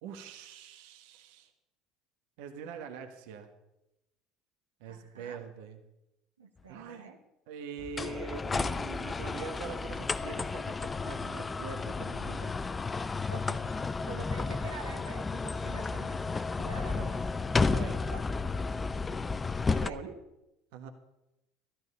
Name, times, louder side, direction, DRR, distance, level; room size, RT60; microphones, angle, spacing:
voice 1, 0.0-1.5 2.4-3.5 4.8-5.8 6.7-7.1 7.5-12.5 16.9-17.1 17.6-18.0 19.8-20.2 20.7-20.9, right 6 dB, 65° right, 6 dB, 1.4 m, -43 dB
voice 2, 4.8-5.4 6.4-7.2 13.3-13.8 14.1-17.2 18.1-18.3 19.7-20.0, right 3 dB, 85° right, 2 dB, 1.5 m, -47 dB
sound 1, 7.8-19.9, left 4 dB, 25° left, 0.6 m, -32 dB
14.5 x 13.0 x 5.5 m, 0.90 s
figure-of-eight pair, 65°, 0 cm